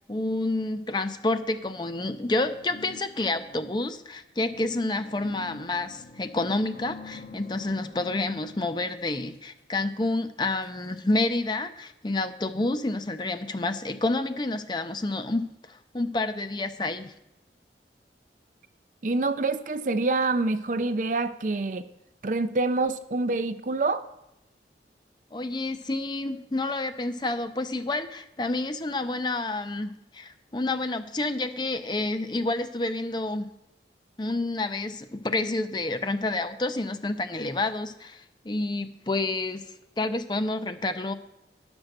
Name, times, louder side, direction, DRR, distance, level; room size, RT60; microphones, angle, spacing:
voice 1, 0.1-17.1 25.3-33.5 34.2-39.6 40.0-41.1, left 2 dB, 25° left, 10 dB, 0.5 m, -29 dB
sound 1, 2.3-4.0 4.5-9.6 10.6-10.7 11.1-11.2, left 3 dB, 55° left, 1.0 m, -47 dB
voice 2, 19.0-21.9 22.2-24.0, right 3 dB, 45° right, 11 dB, 0.5 m, -26 dB
10.5 x 6.1 x 6.5 m, 0.89 s
head